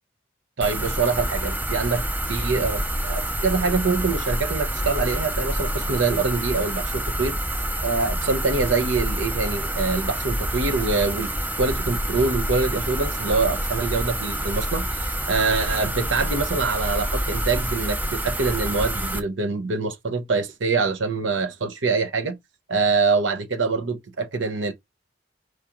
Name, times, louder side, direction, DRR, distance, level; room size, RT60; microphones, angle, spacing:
sound 1, 0.6-19.2, right 1 dB, 10° right, 0.6 m, -27 dB
voice 1, 0.6-7.4 7.8-11.3 11.6-22.4 22.7-24.7, right 4 dB, 80° right, 0.9 m, -25 dB
4.9 x 2.9 x 3.6 m
head